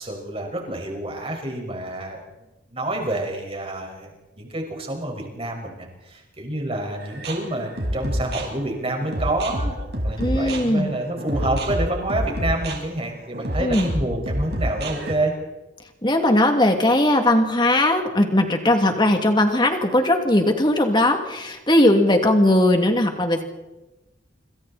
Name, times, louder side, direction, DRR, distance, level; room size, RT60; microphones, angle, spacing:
voice 1, 0.0-2.2 2.7-4.1 4.4-9.8 10.0-15.3, right 1 dB, 30° right, 1 dB, 5.9 m, -28 dB
sound 1, 7.0-15.1, equal, 60° right, 5.3 m, -28 dB
voice 2, 10.2-10.9 13.6-13.9 16.0-23.4, left 1 dB, 25° left, 4 dB, 2.8 m, -19 dB
27.5 x 27.0 x 4.4 m, 1.1 s
head